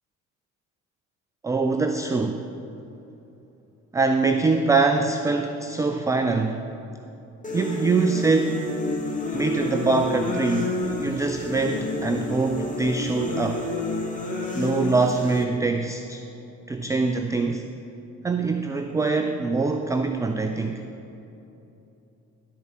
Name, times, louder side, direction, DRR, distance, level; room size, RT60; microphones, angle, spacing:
voice 1, 1.4-2.4 3.9-6.6 7.5-8.6 9.3-10.7 11.0-13.7 14.5-16.2 16.7-17.7 18.2-20.8, right 3 dB, 10° right, 6 dB, 0.3 m, -23 dB
sound 1, 7.4-15.4, left 2 dB, 15° left, 2.0 m, -29 dB
12.5 x 4.7 x 6.0 m, 2.9 s
figure-of-eight pair, 55°, 43 cm